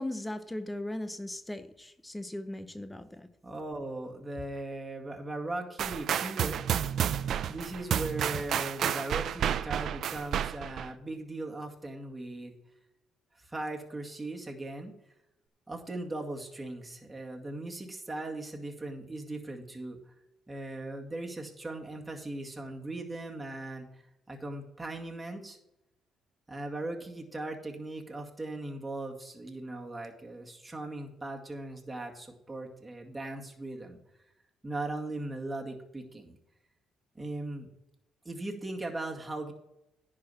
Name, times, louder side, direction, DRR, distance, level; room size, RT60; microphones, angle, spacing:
voice 1, 0.0-3.3, left 1 dB, 10° left, 0.8 m, -38 dB
voice 2, 3.4-6.6 7.5-12.5 13.4-14.9 15.7-20.0 20.5-23.9 24.3-25.6 26.5-34.0 34.6-36.4 37.1-37.7 38.2-39.5, right 2 dB, 15° right, 2.1 m, -38 dB
sound 1, 5.8-10.9, right 9 dB, 65° right, 0.5 m, -31 dB
10.5 x 4.9 x 7.3 m
cardioid pair, 85°, 0 cm